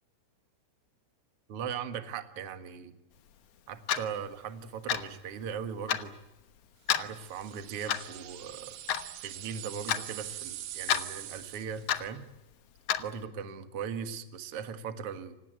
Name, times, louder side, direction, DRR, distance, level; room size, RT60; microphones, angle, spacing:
voice 1, 1.5-2.9 3.7-6.1 6.9-8.8 9.2-12.2 13.0-15.4, right 7 dB, 50° right, 9 dB, 2.0 m, -39 dB
Clock, 3.9-4.1 4.9-5.1 5.9-6.0 6.9-7.1 7.9-8.1 8.9-9.0 9.9-10.0 10.9-11.0 11.9-12.1 12.9-13.0, left 10 dB, 75° left, 1.4 m, -28 dB
sound 1, 7.1-11.9, right 13 dB, 70° right, 2.8 m, -43 dB
26.5 x 19.0 x 9.4 m, 1.0 s
omnidirectional pair, 4.6 m